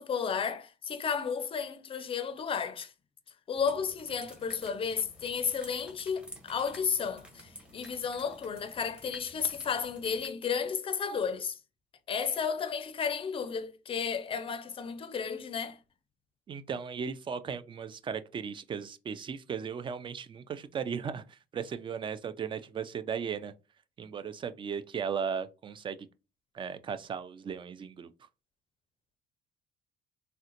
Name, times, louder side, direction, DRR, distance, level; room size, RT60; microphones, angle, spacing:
voice 1, 0.0-2.9 3.5-11.6 12.1-15.8, left 6 dB, 35° left, 0.5 m, -33 dB
sound 1, 3.5-10.3, equal, 5° right, 1.0 m, -52 dB
voice 2, 16.5-23.5 24.0-26.0 26.5-28.1, right 6 dB, 30° right, 0.3 m, -36 dB
3.6 x 2.1 x 2.8 m
cardioid pair, 110°, 17 cm